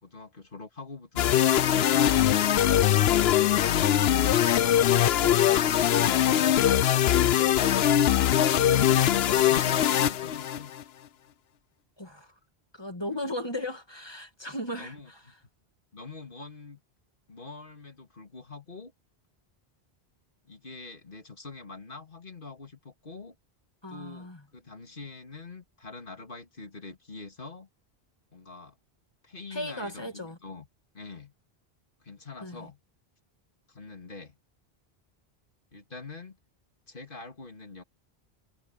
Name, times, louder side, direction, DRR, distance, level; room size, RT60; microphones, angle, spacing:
voice 1, 0.0-2.8 4.9-6.8 8.0-10.7 14.8-15.3 15.9-16.8 17.3-18.9 20.5-23.3 23.9-27.7 28.3-28.8 29.2-30.7 30.9-31.3 32.0-32.8 33.7-34.4 35.7-36.4 36.9-37.8, left 4 dB, 55° left, 2.8 m, -44 dB
sound 1, 1.2-10.8, left 11 dB, 75° left, 0.9 m, -22 dB
voice 2, 5.2-5.7 12.0-12.3 12.7-14.9 23.8-24.4 29.5-30.4 32.4-32.7, left 1 dB, 25° left, 2.5 m, -36 dB
omnidirectional pair, 1.1 m